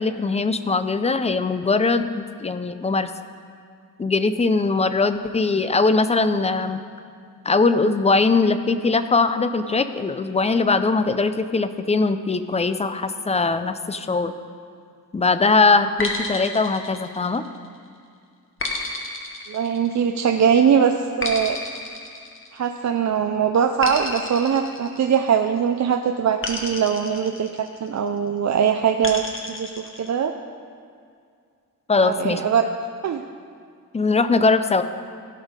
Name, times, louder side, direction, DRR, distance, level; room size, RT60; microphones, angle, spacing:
voice 1, 0.0-3.1 4.0-6.8 7.5-14.3 15.1-17.4 31.9-32.4 33.9-34.8, left 3 dB, 20° left, 10 dB, 0.4 m, -21 dB
sound 1, 16.0-17.7 18.6-20.3 21.2-22.9 23.8-25.6 26.4-28.0 29.0-30.1, left 2 dB, 35° left, 1.1 m, -31 dB
voice 2, 19.5-21.6 22.5-30.3 32.0-32.7 33.0-33.2, right 7 dB, 55° right, 5 dB, 0.5 m, -21 dB
15.5 x 6.4 x 5.1 m, 2.3 s
wide cardioid pair, 155°, 34 cm